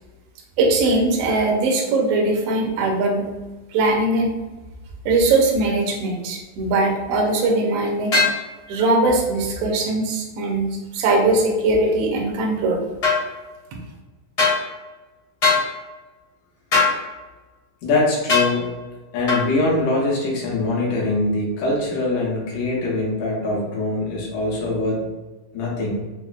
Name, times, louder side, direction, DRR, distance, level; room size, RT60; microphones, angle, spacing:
voice 1, 0.6-3.3 3.7-4.3 5.0-8.1 8.7-12.8, right 2 dB, 85° right, -1 dB, 1.4 m, -20 dB
sound 1, 8.1-8.4 13.0-13.2 14.4-14.6 15.4-15.6 16.7-17.0 18.3-18.5 19.3-19.4, left 4 dB, 55° left, 1.0 m, -18 dB
voice 2, 17.8-18.7 19.1-25.1 25.5-26.0, left 2 dB, 75° left, -4 dB, 2.2 m, -23 dB
5.8 x 2.0 x 2.4 m, 1.2 s
omnidirectional pair, 3.8 m